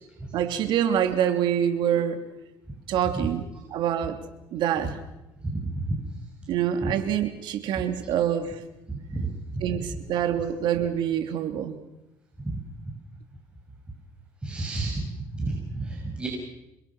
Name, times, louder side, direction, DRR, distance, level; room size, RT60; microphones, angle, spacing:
voice 1, 0.3-2.2 2.9-3.4 3.7-4.2 4.5-5.0 6.5-8.6 9.6-11.8, right 9 dB, 70° right, 7 dB, 3.0 m, -26 dB
voice 2, 8.9-9.3 12.4-12.5 14.4-15.0 15.4-16.3, right 2 dB, 10° right, -2 dB, 6.3 m, -30 dB
28.5 x 22.5 x 6.1 m, 0.92 s
cardioid pair, 105°, 8 cm